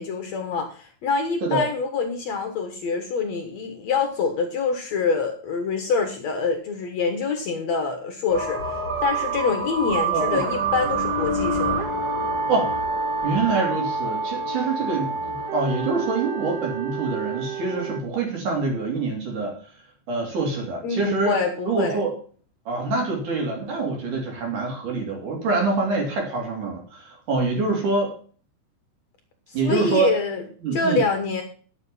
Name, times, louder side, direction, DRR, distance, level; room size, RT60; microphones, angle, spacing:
voice 1, 0.0-11.8 20.8-22.0 29.5-30.4 30.7-31.4, left 4 dB, 60° left, 5 dB, 2.1 m, -26 dB
sound 1, 8.3-18.0, right 3 dB, 30° right, 2.1 m, -27 dB
voice 2, 10.1-10.4 12.5-12.8 13.2-19.5 20.1-21.4 21.7-22.1 22.7-28.1 29.5-30.1 30.6-31.0, right 3 dB, 60° right, 1 dB, 4.5 m, -25 dB
11.0 x 7.8 x 5.5 m, 0.43 s
omnidirectional pair, 4.2 m